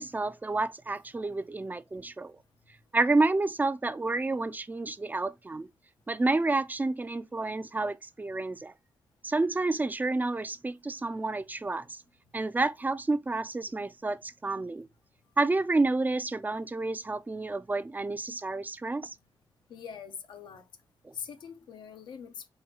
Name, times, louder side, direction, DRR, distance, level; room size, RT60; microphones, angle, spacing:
voice 1, 0.0-2.3 2.9-5.7 6.1-8.7 9.2-12.0 12.3-14.9 15.4-19.1 21.0-21.1, right 3 dB, 25° right, 0.4 m, -29 dB
voice 2, 19.7-20.6 21.1-22.5, left 7 dB, 90° left, 0.8 m, -43 dB
4.2 x 2.3 x 4.7 m
cardioid pair, 70°, 8 cm